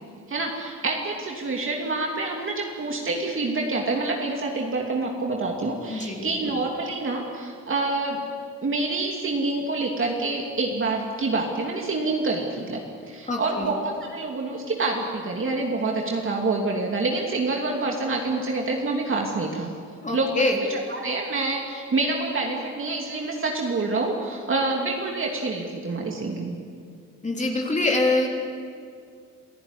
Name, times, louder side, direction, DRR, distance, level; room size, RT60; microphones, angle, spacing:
voice 1, 0.3-8.2 8.6-12.8 13.1-19.7 20.1-20.4 20.7-26.6, right 3 dB, 45° right, 0 dB, 2.8 m, -27 dB
voice 2, 5.9-6.3 13.3-13.7 20.0-20.6 27.2-28.3, left 2 dB, 25° left, 0 dB, 3.5 m, -24 dB
27.0 x 14.5 x 9.9 m, 2.3 s
cardioid pair, 95°, 30 cm